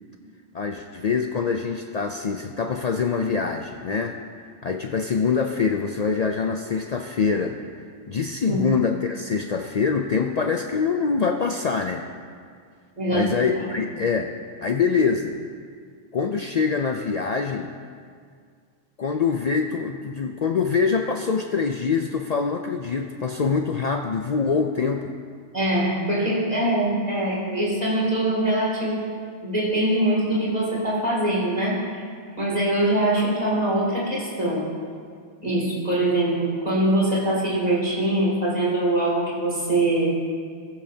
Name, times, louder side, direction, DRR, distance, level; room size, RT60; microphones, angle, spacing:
voice 1, 0.5-7.6 8.1-12.1 13.1-14.3 14.6-15.4 16.1-17.7 19.0-25.1, left 5 dB, 65° left, 4 dB, 0.4 m, -24 dB
voice 2, 13.0-13.3 13.5-13.6 25.5-29.0 29.4-32.0 32.4-34.7 35.4-40.2, right 1 dB, 35° right, -6 dB, 2.7 m, -23 dB
18.5 x 7.3 x 2.8 m, 2.1 s
omnidirectional pair, 1.2 m